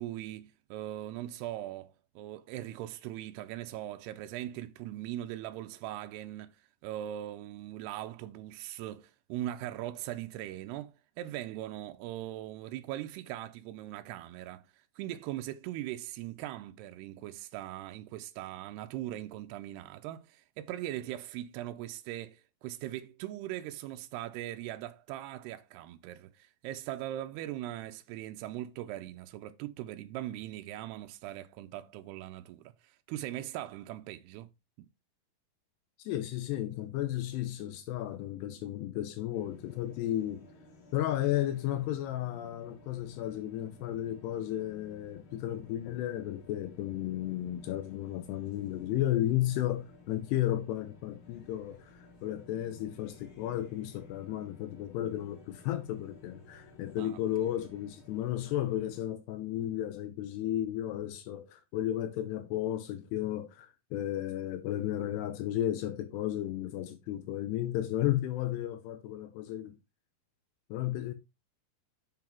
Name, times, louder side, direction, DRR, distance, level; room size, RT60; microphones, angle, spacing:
voice 1, 0.0-34.5 57.0-57.2, right 13 dB, 85° right, 2.6 m, -40 dB
voice 2, 36.0-40.5 40.9-69.8 70.7-71.1, left 13 dB, 85° left, 2.8 m, -33 dB
sound 1, 39.3-59.1, left 2 dB, 55° left, 1.4 m, -56 dB
7.5 x 5.9 x 4.4 m
omnidirectional pair, 4.7 m